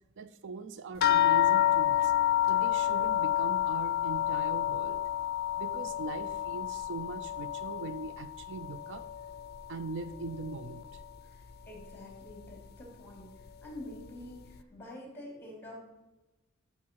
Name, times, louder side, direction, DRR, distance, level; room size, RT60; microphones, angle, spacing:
voice 1, 0.2-2.1 2.4-5.0 5.6-9.1 9.7-11.0, right 3 dB, 60° right, 12 dB, 0.5 m, -41 dB
sound 1, 1.0-9.8 10.1-11.0 11.8-11.9 12.3-12.4, left 12 dB, 50° left, 0.5 m, -29 dB
voice 2, 11.2-15.7, left 1 dB, 10° left, -1 dB, 3.6 m, -47 dB
13.0 x 6.5 x 4.7 m, 1.1 s
head